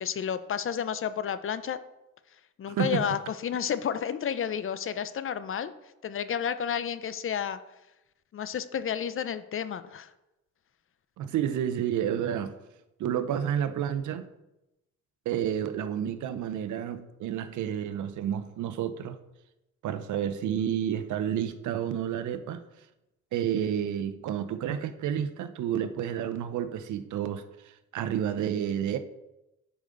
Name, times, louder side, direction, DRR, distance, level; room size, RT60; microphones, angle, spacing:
voice 1, 0.0-1.8 2.6-5.7 6.0-7.6 8.3-10.1, left 8 dB, 45° left, 13 dB, 0.6 m, -31 dB
voice 2, 2.7-3.1 11.2-12.6 13.0-14.3 15.3-19.2 19.8-22.6 23.3-27.4 27.9-29.0, right 9 dB, 75° right, 11 dB, 0.7 m, -30 dB
10.5 x 5.1 x 3.9 m, 0.95 s
cardioid pair, 90°, 30 cm